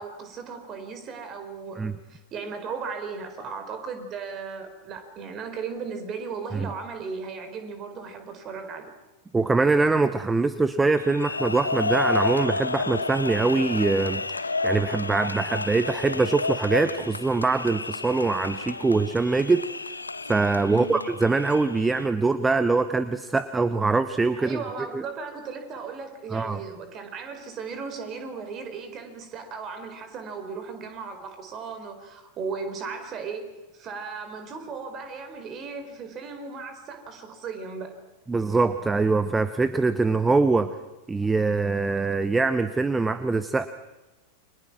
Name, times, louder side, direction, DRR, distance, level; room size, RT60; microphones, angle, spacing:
voice 1, 0.0-9.0 20.7-21.0 24.4-33.4 33.7-37.9, right 5 dB, 30° right, 7 dB, 4.5 m, -36 dB
voice 2, 9.3-19.7 20.3-24.6 24.9-25.0 26.3-26.6 38.3-40.8 41.1-43.7, right 3 dB, 10° right, 13 dB, 0.9 m, -23 dB
sound 1, 11.0-22.1, left 3 dB, 80° left, 0.9 m, -31 dB
29.5 x 24.5 x 6.1 m, 1.1 s
figure-of-eight pair, 90°, 0 cm